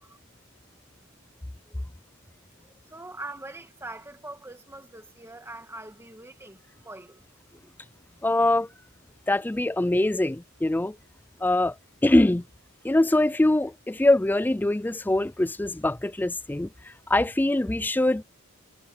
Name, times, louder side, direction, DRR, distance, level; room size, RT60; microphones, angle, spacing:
voice 1, 2.9-7.2, right 2 dB, 10° right, 1.9 m, -42 dB
voice 2, 8.2-8.7 9.3-11.0 11.4-11.7 12.0-12.4 12.8-18.2, left 1 dB, 10° left, 0.4 m, -23 dB
head